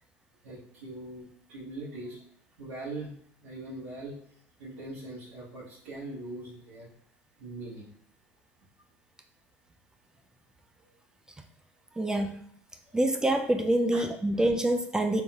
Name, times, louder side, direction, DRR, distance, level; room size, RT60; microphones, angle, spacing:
voice 1, 0.4-2.2 2.6-3.1 3.4-4.2 4.6-6.9 7.4-7.9 10.8-10.9 11.9-12.1 12.9-13.0 13.9-14.1, right 2 dB, 85° right, -10 dB, 1.3 m, -41 dB
voice 2, 12.0-12.3 12.9-15.2, right 1 dB, 10° right, 5 dB, 0.4 m, -26 dB
4.0 x 3.5 x 2.4 m, 0.66 s
supercardioid pair, 105°, 7 cm